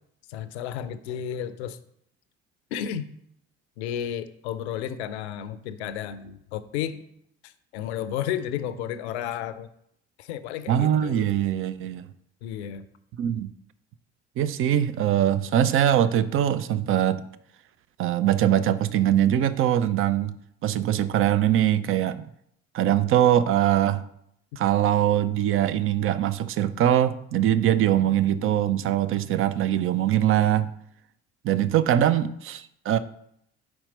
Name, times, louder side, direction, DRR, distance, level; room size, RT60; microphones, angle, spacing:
voice 1, 0.3-1.8 2.7-3.1 3.8-7.0 7.4-9.7 10.2-11.3 12.4-12.8, left 9 dB, 75° left, 13 dB, 0.5 m, -32 dB
voice 2, 10.7-12.1 13.2-13.5 14.4-17.2 18.0-20.3 20.6-22.3 22.7-24.0 24.6-30.7 31.4-33.0, right 11 dB, 40° right, 14 dB, 0.5 m, -22 dB
4.6 x 4.4 x 5.1 m, 0.73 s
figure-of-eight pair, 50°, 34 cm